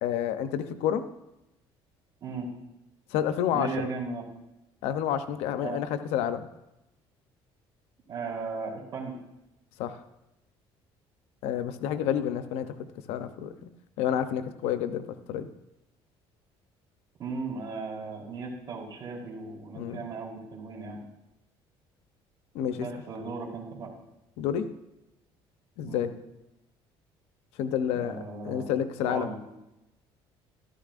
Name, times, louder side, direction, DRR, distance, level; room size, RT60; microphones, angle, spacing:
voice 1, 0.0-1.0 3.1-3.9 4.8-6.5 9.8-10.0 11.4-13.7 14.0-15.0 15.3-15.5 19.8-20.1 22.5-22.9 24.4-24.6 25.8-26.1 27.6-29.3, left 9 dB, 90° left, 10 dB, 0.7 m, -29 dB
voice 2, 3.5-4.2 5.6-5.8 8.1-9.1 17.2-21.0 22.8-23.9 25.8-26.1 27.9-28.7 29.0-29.4, right 4 dB, 45° right, -2 dB, 3.6 m, -36 dB
14.0 x 12.5 x 2.5 m, 0.91 s
cardioid pair, 120°, 10 cm